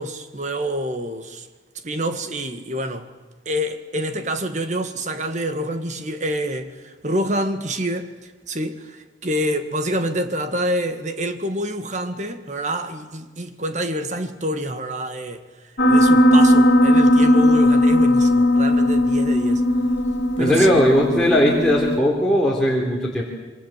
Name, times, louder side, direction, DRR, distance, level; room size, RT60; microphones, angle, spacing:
voice 1, 0.0-1.5 1.8-3.1 3.5-8.1 8.5-15.4 15.9-19.6 20.4-20.7, equal, 40° right, 1.8 m, -27 dB
Piano, 15.8-22.0, left 1 dB, 65° left, 2.9 m, -17 dB
voice 2, 20.4-23.2, equal, 5° left, 3.5 m, -18 dB
27.0 x 24.0 x 7.5 m
head